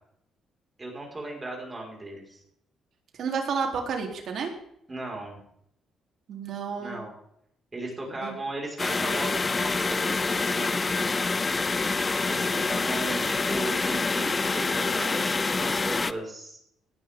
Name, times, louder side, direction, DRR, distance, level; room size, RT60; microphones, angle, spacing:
voice 1, 0.8-2.4 4.9-5.4 6.8-7.1 7.7-10.7 12.2-16.6, right 2 dB, 25° right, -1 dB, 5.4 m, -36 dB
voice 2, 3.2-4.5 6.3-7.0 8.2-8.3, right 5 dB, 65° right, 2 dB, 3.7 m, -30 dB
sound 1, 8.8-16.1, left 3 dB, 30° left, 0.6 m, -26 dB
18.0 x 11.5 x 3.8 m, 0.73 s
cardioid pair, 90°, 0 cm